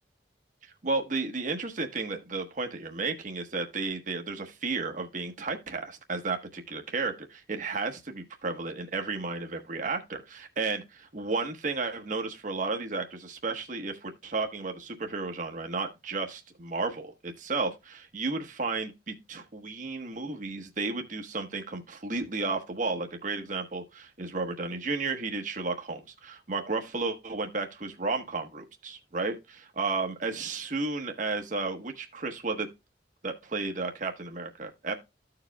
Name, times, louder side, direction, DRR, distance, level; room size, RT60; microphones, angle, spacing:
voice 1, 0.8-32.7 33.2-34.9, right 3 dB, 45° right, 1.1 m, -33 dB
14.5 x 4.9 x 2.2 m
head